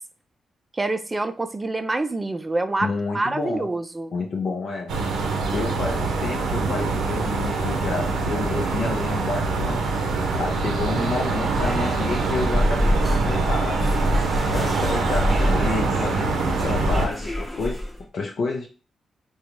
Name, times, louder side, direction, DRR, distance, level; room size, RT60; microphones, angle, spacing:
voice 1, 0.7-4.1, right 2 dB, 25° right, 10 dB, 0.4 m, -26 dB
voice 2, 2.8-3.7 4.1-4.9 5.5-14.2 14.5-17.8 18.1-18.7, left 3 dB, 65° left, -1 dB, 0.6 m, -30 dB
sound 1, 4.9-17.1, right 3 dB, 90° right, 0.6 m, -24 dB
sound 2, 10.8-18.0, left 1 dB, 15° left, 0.8 m, -26 dB
3.8 x 2.3 x 3.0 m, 0.36 s
cardioid pair, 75°, 0 cm